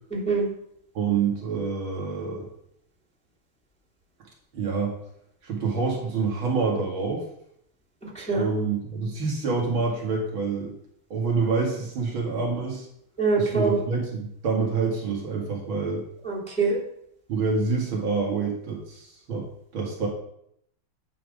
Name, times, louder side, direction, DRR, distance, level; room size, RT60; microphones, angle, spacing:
voice 1, 0.1-0.5 8.0-8.5 13.2-13.8 16.2-16.8, right 4 dB, 5° left, -6 dB, 2.6 m, -24 dB
voice 2, 0.9-2.5 4.5-4.9 5.4-7.2 8.3-10.7 11.1-12.9 13.4-16.0 17.3-19.5 19.7-20.1, right 4 dB, 85° right, -1 dB, 2.9 m, -27 dB
9.1 x 6.0 x 5.1 m, 0.72 s
omnidirectional pair, 2.2 m